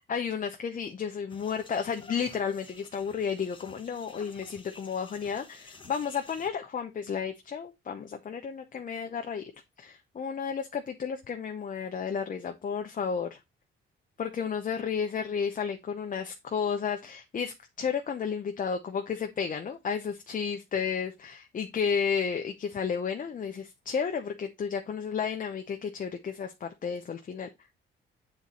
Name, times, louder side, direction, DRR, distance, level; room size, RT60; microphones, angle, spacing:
voice 1, 0.1-9.5 9.8-13.4 14.2-27.5, left 6 dB, 40° left, 0.9 m, -32 dB
sound 1, 1.3-6.5, left 4 dB, 25° left, 1.3 m, -51 dB
8.0 x 4.2 x 3.8 m
cardioid pair, 90°, 20 cm